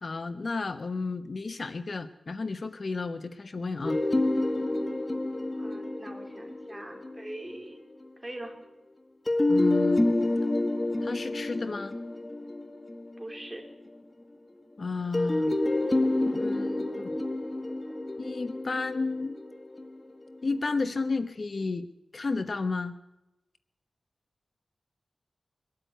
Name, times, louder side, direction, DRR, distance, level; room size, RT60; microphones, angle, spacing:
voice 1, 0.0-4.0 9.5-10.1 11.0-12.0 14.8-15.5 16.3-17.2 18.2-19.4 20.4-22.9, left 3 dB, 55° left, 11 dB, 1.0 m, -32 dB
sound 1, 3.8-7.7 9.3-13.7 15.1-20.3, left 2 dB, 25° left, 1.9 m, -28 dB
voice 2, 5.6-7.8 8.2-8.6 13.2-13.6, right 1 dB, 20° right, 2 dB, 4.3 m, -42 dB
23.5 x 12.5 x 9.3 m, 0.94 s
wide cardioid pair, 85°, 0 cm